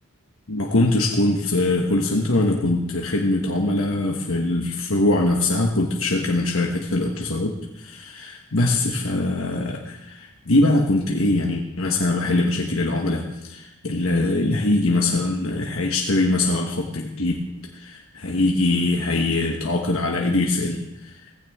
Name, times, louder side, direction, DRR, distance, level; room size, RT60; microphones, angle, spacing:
voice 1, 0.5-21.3, left 2 dB, 75° left, 1 dB, 1.3 m, -22 dB
17.5 x 15.5 x 3.6 m, 0.88 s
head